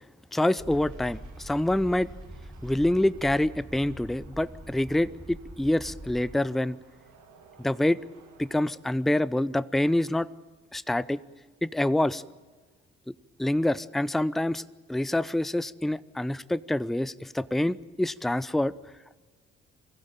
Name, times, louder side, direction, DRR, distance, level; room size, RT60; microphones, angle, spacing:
voice 1, 0.3-2.1 2.6-6.8 7.6-8.0 8.4-10.3 10.7-11.2 11.6-12.2 13.4-14.6 14.9-18.7, left 1 dB, ahead, 19 dB, 0.6 m, -26 dB
sound 1, 0.6-6.3, right 1 dB, 20° right, 1.8 m, -44 dB
sound 2, 0.7-8.7, right 6 dB, 70° right, 2.3 m, -57 dB
23.5 x 16.0 x 9.0 m, 1.4 s
hypercardioid pair, 40°, 31 cm